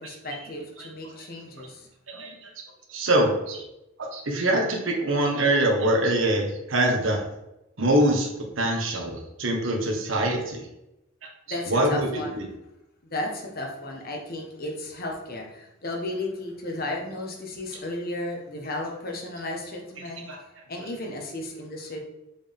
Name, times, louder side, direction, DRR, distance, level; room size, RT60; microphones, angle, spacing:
voice 1, 0.0-1.9 11.5-12.4 13.1-22.0, left 1 dB, 50° left, 1 dB, 1.3 m, -34 dB
voice 2, 2.1-2.5 2.9-3.6 4.0-7.2 7.8-10.7 11.7-12.4 20.3-20.4, right 1 dB, 85° right, 0 dB, 1.5 m, -24 dB
7.1 x 4.7 x 3.6 m, 0.89 s
head